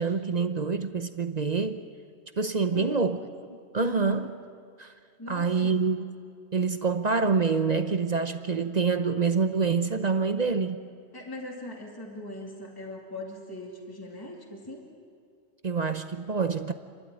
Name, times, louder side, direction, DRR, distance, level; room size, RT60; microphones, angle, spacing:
voice 1, 0.0-1.9 2.4-3.2 3.7-4.3 4.8-4.9 5.3-6.0 6.5-10.8 15.6-16.7, right 5 dB, 40° right, 0.8 m, -26 dB
voice 2, 2.7-3.1 3.8-4.3 5.2-5.8 11.1-14.9, left 1 dB, 20° left, 2.5 m, -40 dB
29.0 x 12.0 x 9.8 m
omnidirectional pair, 1.2 m